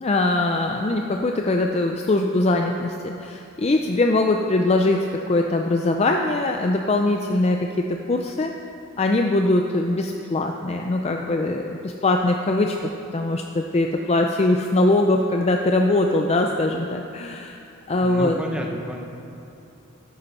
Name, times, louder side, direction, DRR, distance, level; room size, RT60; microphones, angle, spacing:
voice 1, 0.0-8.5 9.0-12.8 13.1-17.6 17.9-18.4, left 2 dB, 30° left, 3 dB, 0.4 m, -22 dB
voice 2, 18.0-19.0, equal, 5° right, 1 dB, 0.8 m, -30 dB
13.0 x 10.5 x 4.2 m, 2.7 s
head